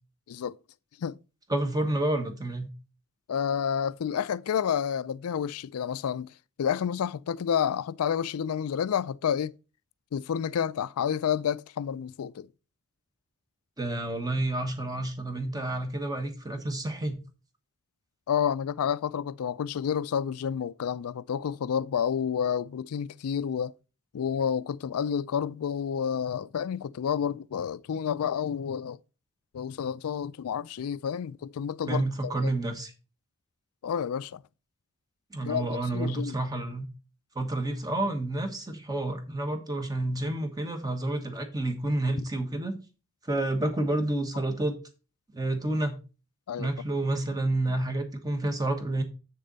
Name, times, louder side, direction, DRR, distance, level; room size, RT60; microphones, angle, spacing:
voice 1, 1.5-2.7 13.8-17.2 31.9-32.9 35.3-36.9 37.3-42.8 43.2-44.8 45.3-46.0 46.6-49.0, right 1 dB, 15° right, 1.3 m, -29 dB
voice 2, 3.3-6.3 6.6-9.5 10.1-12.5 18.3-23.7 24.1-29.0 29.5-32.5 33.8-34.4 35.4-36.4 46.5-46.7, left 8 dB, 75° left, 0.4 m, -30 dB
7.5 x 6.8 x 3.9 m
head